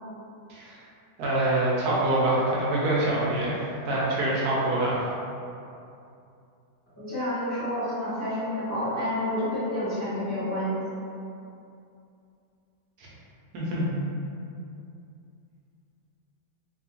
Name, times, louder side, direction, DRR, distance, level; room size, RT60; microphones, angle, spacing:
voice 1, 1.2-5.1 13.0-13.1 13.5-13.9, right 1 dB, 75° right, -6 dB, 1.1 m, -25 dB
voice 2, 6.9-10.7, left 1 dB, 10° left, -14 dB, 0.8 m, -29 dB
2.7 x 2.7 x 2.8 m, 2.6 s
omnidirectional pair, 1.8 m